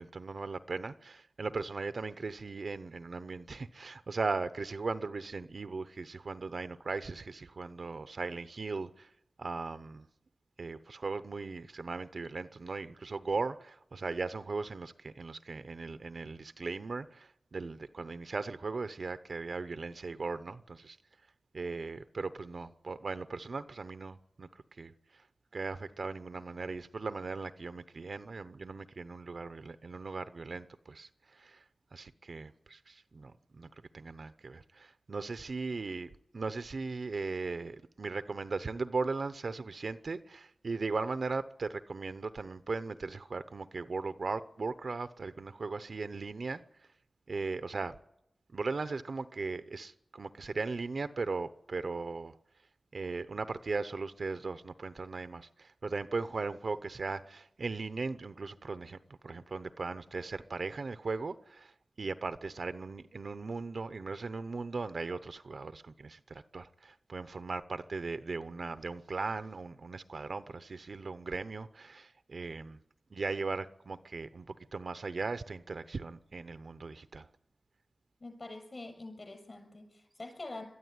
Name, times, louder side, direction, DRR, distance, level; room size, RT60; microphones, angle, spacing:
voice 1, 0.0-9.1 9.4-10.0 10.6-21.0 21.5-24.5 24.8-24.9 25.5-31.6 31.9-33.7 33.9-46.6 47.3-48.0 48.5-52.4 52.9-59.0 59.2-72.8 73.1-77.3, right 4 dB, 65° right, 0.8 m, -38 dB
voice 2, 78.2-80.6, left 2 dB, 45° left, 7.1 m, -45 dB
22.0 x 13.0 x 9.8 m
wide cardioid pair, 90°, 0 cm